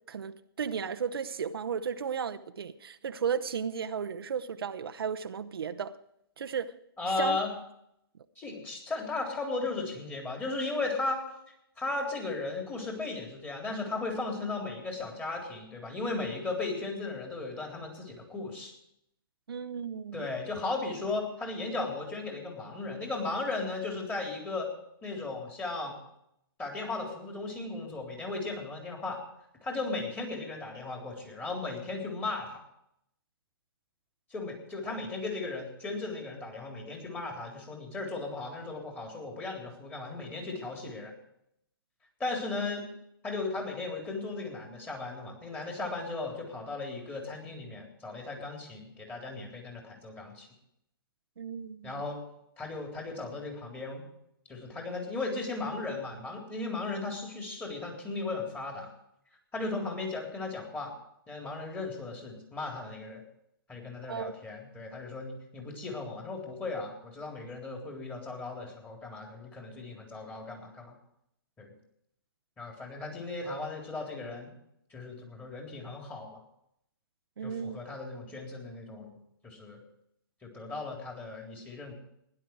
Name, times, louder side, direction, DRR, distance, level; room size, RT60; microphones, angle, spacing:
voice 1, 0.1-5.9 6.4-6.7 7.2-7.4 19.5-20.3 51.4-51.9 64.1-64.3 77.4-77.8, right 7 dB, 75° right, 0.8 m, -34 dB
voice 2, 7.0-7.5 8.4-11.2 11.8-18.7 20.1-24.7 25.0-26.0 26.6-29.2 29.6-32.6 34.3-41.1 42.2-42.9 43.2-50.5 51.8-52.2 52.6-54.1 54.5-58.9 59.5-60.9 61.3-63.2 63.7-71.0 71.6-71.7 72.6-74.5 74.9-76.4 77.4-79.1 79.4-79.8 80.4-82.0, left 3 dB, 15° left, 3.7 m, -36 dB
16.5 x 11.0 x 4.7 m
hypercardioid pair, 135°, 13 cm